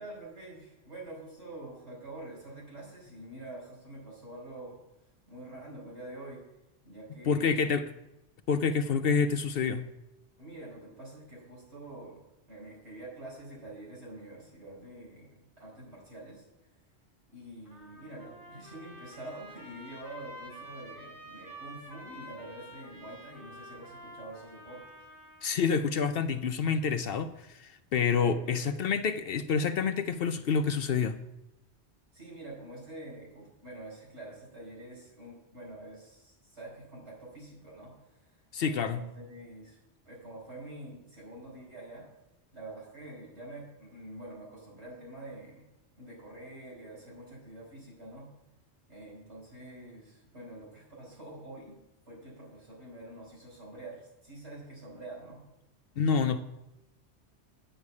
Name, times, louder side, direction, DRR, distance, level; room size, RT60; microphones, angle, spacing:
voice 1, 0.0-4.8 5.3-6.4 6.8-7.7 10.4-12.2 12.5-16.4 17.3-24.9 28.1-28.7 32.1-38.3 38.6-39.8 40.0-42.1 42.5-45.7 46.0-48.3 48.9-51.8 52.1-55.4, right 2 dB, 70° right, -4 dB, 5.0 m, -46 dB
voice 2, 7.3-7.9 8.5-9.9 25.4-31.2 38.5-39.0 56.0-56.4, left 6 dB, 60° left, 9 dB, 0.8 m, -28 dB
Trumpet, 17.6-25.5, equal, 20° right, 3.7 m, -49 dB
8.9 x 6.7 x 8.3 m, 0.92 s
omnidirectional pair, 1.2 m